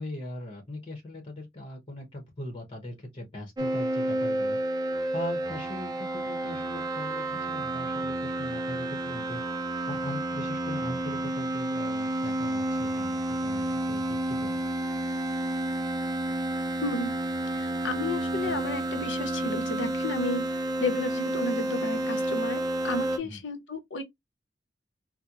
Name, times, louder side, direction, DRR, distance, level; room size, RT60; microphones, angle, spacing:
voice 1, 0.0-4.6 5.1-9.4 9.9-14.6 18.4-18.6 23.2-23.4, left 1 dB, 30° left, 0.9 m, -40 dB
sound 1, 3.6-23.2, right 1 dB, 20° right, 0.5 m, -30 dB
voice 2, 16.8-17.1 17.5-24.0, left 2 dB, 75° left, 0.8 m, -32 dB
4.3 x 2.2 x 2.4 m
head